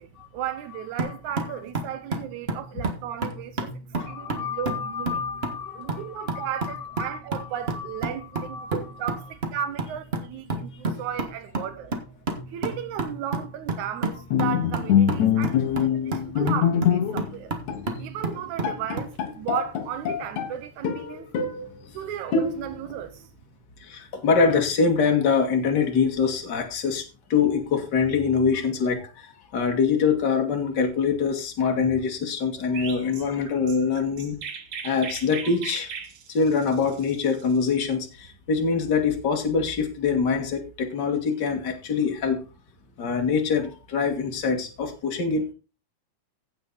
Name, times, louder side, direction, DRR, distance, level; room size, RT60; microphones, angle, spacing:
voice 1, 0.0-3.7 4.1-5.2 5.8-11.9 12.5-17.5 18.0-21.3 21.9-23.2, right 10 dB, 90° right, 2.4 m, -35 dB
voice 2, 0.7-1.6 3.9-9.3 23.9-27.0 27.3-34.4 34.8-35.9 36.3-42.4 43.0-45.5, left 5 dB, 40° left, 2.4 m, -25 dB
sound 1, 1.0-19.1, right 3 dB, 30° right, 1.3 m, -32 dB
Bowed string instrument, 14.3-17.4 17.7-17.9 18.3-18.4 18.6-20.5 20.8-21.7 22.3-22.9, left 8 dB, 80° left, 2.6 m, -24 dB
Chirp tweet, 32.7-37.9, right 6 dB, 55° right, 1.9 m, -38 dB
16.0 x 6.4 x 4.1 m
omnidirectional pair, 3.3 m